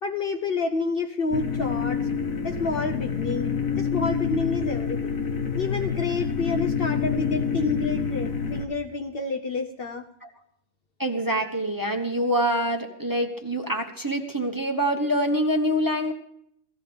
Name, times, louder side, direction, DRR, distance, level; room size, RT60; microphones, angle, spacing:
voice 1, 0.0-2.1 2.4-5.1 5.6-10.1, left 4 dB, 55° left, 5 dB, 0.8 m, -29 dB
sound 1, 1.3-8.6, left 6 dB, 90° left, 1.6 m, -27 dB
voice 2, 11.0-16.1, equal, 15° right, 2 dB, 1.0 m, -25 dB
16.5 x 14.5 x 3.5 m, 0.69 s
omnidirectional pair, 1.4 m